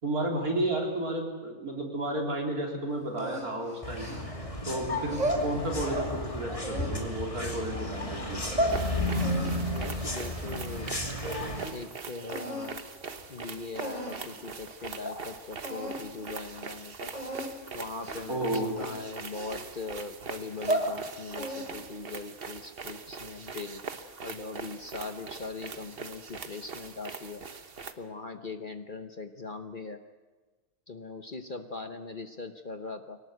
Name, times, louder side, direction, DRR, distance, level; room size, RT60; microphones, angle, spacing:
voice 1, 0.0-4.2 4.6-8.4 18.3-18.8, right 1 dB, 70° right, 0 dB, 4.3 m, -32 dB
sound 1, 3.2-4.5 5.0-6.1 6.6-7.7 8.2-8.8 9.2-11.0 11.2-11.9 12.3-12.7 13.4-13.5 13.8-14.3 14.7-14.8 15.0-15.2 15.6-16.0 16.3-16.6 17.1-17.5 18.0-18.3 18.8-19.9 20.4-20.9 21.3-21.9, right 1 dB, 25° right, 4.0 m, -34 dB
sound 2, 3.8-11.6, left 1 dB, 20° left, 2.6 m, -33 dB
sound 3, 8.7-27.9, right 5 dB, 40° right, 1.3 m, -42 dB
voice 2, 9.7-10.9 11.7-12.8 13.3-17.1 17.7-23.8 24.2-27.4 28.0-30.0 30.9-33.2, left 3 dB, 40° left, 7 dB, 1.0 m, -40 dB
22.5 x 18.5 x 8.0 m, 1.3 s
omnidirectional pair, 1.6 m